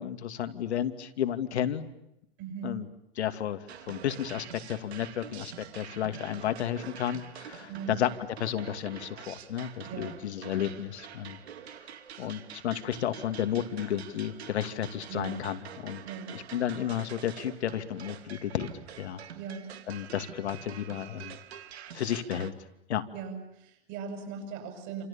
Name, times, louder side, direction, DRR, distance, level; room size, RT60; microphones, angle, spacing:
voice 1, 0.0-1.9 2.6-2.9 3.2-3.6 3.9-8.1 8.4-11.4 12.2-16.0 16.3-18.7 19.0-19.2 19.9-21.4 21.9-22.5 22.9-23.0, left 10 dB, 80° left, 9 dB, 2.6 m, -32 dB
voice 2, 2.4-2.7 7.7-8.0 9.8-10.2 15.1-15.4 16.0-16.3 19.3-19.7 23.1-25.0, right 6 dB, 35° right, 5 dB, 7.5 m, -39 dB
sound 1, 3.7-22.5, right 9 dB, 75° right, 2.8 m, -46 dB
29.0 x 28.0 x 7.1 m, 0.85 s
supercardioid pair, 155°, 33 cm